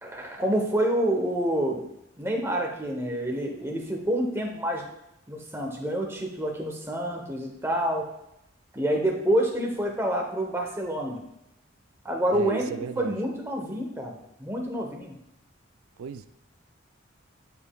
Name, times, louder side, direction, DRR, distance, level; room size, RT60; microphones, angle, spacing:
voice 1, 0.0-1.8 2.2-4.9 5.3-8.1 8.7-11.2 12.0-15.1, right 1 dB, 10° right, 1 dB, 0.8 m, -28 dB
voice 2, 12.3-13.2 16.0-16.3, right 7 dB, 90° right, 12 dB, 0.3 m, -35 dB
9.3 x 5.1 x 2.3 m, 0.84 s
head